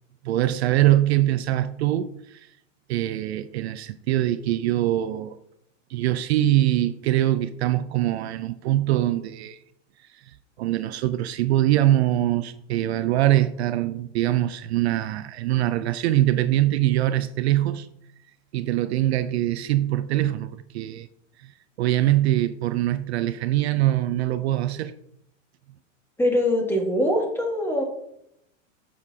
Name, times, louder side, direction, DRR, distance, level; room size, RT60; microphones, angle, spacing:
voice 1, 0.2-2.5 2.9-5.4 5.9-9.6 10.2-17.9 18.5-21.1 21.4-21.5 21.8-24.9, right 14 dB, 55° right, 0.5 m, -23 dB
voice 2, 26.2-27.8, left 1 dB, 5° left, 1.5 m, -23 dB
8.7 x 6.6 x 2.7 m
hypercardioid pair, 140°, 38 cm